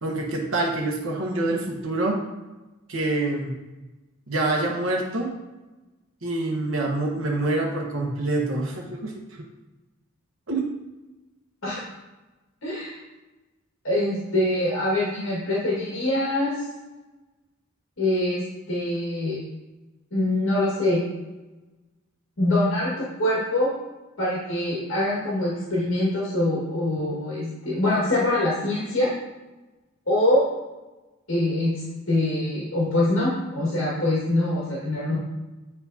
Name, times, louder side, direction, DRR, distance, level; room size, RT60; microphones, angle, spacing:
voice 1, 0.0-2.2 2.9-3.5 4.3-5.3 6.2-9.4 10.5-10.6, right 2 dB, 80° right, -1 dB, 1.1 m, -26 dB
voice 2, 12.6-13.0 13.8-16.6 18.0-18.4 18.7-19.4 20.1-21.0 22.4-22.9 23.2-23.7 24.2-29.1 30.1-30.4 31.3-35.2, left 1 dB, 80° left, -7 dB, 1.8 m, -24 dB
8.4 x 4.5 x 2.8 m, 1.1 s
head